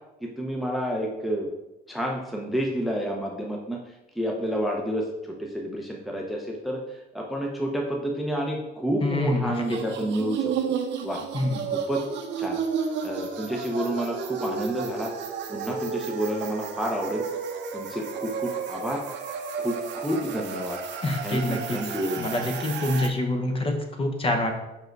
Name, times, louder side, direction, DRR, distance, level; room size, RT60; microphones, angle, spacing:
voice 1, 0.2-1.5 1.9-10.7 11.0-11.2 11.7-12.0 12.4-12.6 13.0-15.1 15.5-17.2 17.7-19.0 19.6-20.8 21.2-22.3, equal, ahead, 0 dB, 0.7 m, -30 dB
voice 2, 9.0-9.8 11.3-11.6 21.0-21.8 22.2-24.5, left 1 dB, 30° left, 4 dB, 0.9 m, -26 dB
sound 1, 9.5-23.1, right 6 dB, 85° right, 0.8 m, -32 dB
5.3 x 4.7 x 4.6 m, 0.98 s
cardioid pair, 145°, 18 cm